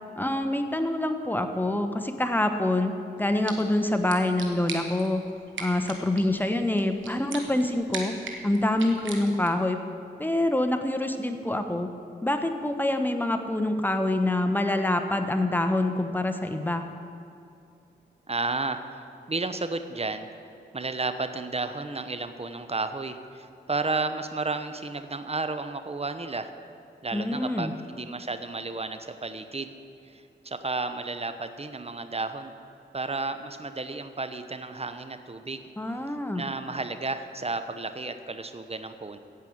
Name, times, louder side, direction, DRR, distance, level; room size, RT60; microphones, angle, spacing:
voice 1, 0.2-5.2 5.6-8.1 8.4-9.8 10.2-11.9 12.2-16.8 27.1-27.7 35.8-36.4, left 1 dB, 10° left, 6 dB, 1.2 m, -26 dB
sound 1, 3.2-9.7, right 4 dB, 85° right, 1.4 m, -41 dB
voice 2, 18.3-20.3 20.7-26.5 27.0-29.7 30.0-32.5 32.9-35.7 36.4-39.2, right 3 dB, 30° right, 9 dB, 1.0 m, -32 dB
16.0 x 5.5 x 8.0 m, 2.6 s
cardioid pair, 45°, 19 cm